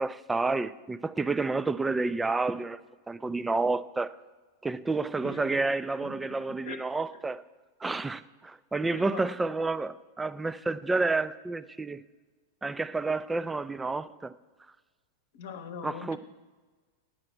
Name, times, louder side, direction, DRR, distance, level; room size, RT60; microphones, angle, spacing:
voice 1, 0.0-2.8 3.1-4.1 4.6-7.4 7.8-12.0 12.6-14.3 15.8-16.2, right 3 dB, 10° right, 0.3 m, -30 dB
voice 2, 5.2-5.8 6.0-6.4 6.6-6.8 8.9-9.3 15.3-16.2, left 6 dB, 55° left, 0.8 m, -42 dB
8.6 x 5.8 x 7.9 m
figure-of-eight pair, 90°, 0 cm